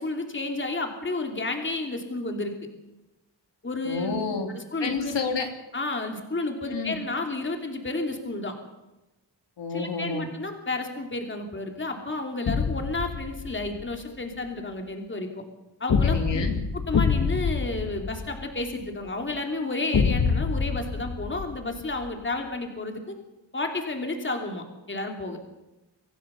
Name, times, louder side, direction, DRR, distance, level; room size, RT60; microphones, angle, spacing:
voice 1, 0.0-2.5 3.6-4.2 4.5-5.1 5.7-8.5 9.7-15.4 15.8-16.4 16.9-23.1 23.5-25.4, left 2 dB, 25° left, 4 dB, 2.9 m, -31 dB
voice 2, 3.8-4.5 4.8-5.5 6.6-7.0 9.6-10.2 16.0-16.6, left 4 dB, 70° left, 4 dB, 3.0 m, -30 dB
sound 1, 12.5-13.8 15.9-18.9 19.9-22.1, left 5 dB, 55° left, 1.7 m, -26 dB
25.0 x 15.5 x 6.9 m, 0.99 s
wide cardioid pair, 145°, 44 cm